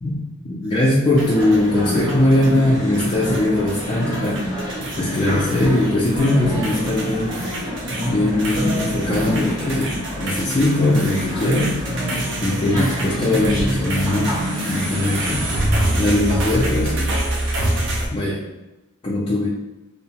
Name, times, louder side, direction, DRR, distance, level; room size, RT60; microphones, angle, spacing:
voice 1, 0.5-7.3 8.0-11.8 12.4-14.3 14.7-17.2 18.1-18.4 19.0-19.5, left 1 dB, 25° left, -6 dB, 0.4 m, -20 dB
sound 1, 1.2-15.9, equal, 20° right, 0.7 m, -27 dB
sound 2, 1.2-2.6 2.9-3.8 4.1-6.3 6.6-18.1, right 1 dB, 60° right, 0.6 m, -27 dB
2.6 x 2.1 x 2.8 m, 1.0 s
head